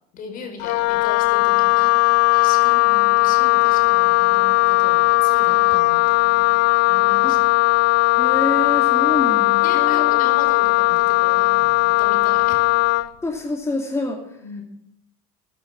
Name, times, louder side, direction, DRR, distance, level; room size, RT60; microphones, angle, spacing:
voice 1, 0.1-6.5 6.9-7.4 8.8-12.6 14.4-14.6, left 4 dB, 50° left, 5 dB, 5.0 m, -37 dB
Wind instrument woodwind instrument, 0.6-13.1, left 21 dB, 65° left, 0.6 m, -17 dB
voice 2, 8.2-10.3 13.2-14.4, left 2 dB, 15° left, 1 dB, 2.6 m, -27 dB
15.0 x 9.4 x 7.7 m, 0.75 s
supercardioid pair, 105°, 18 cm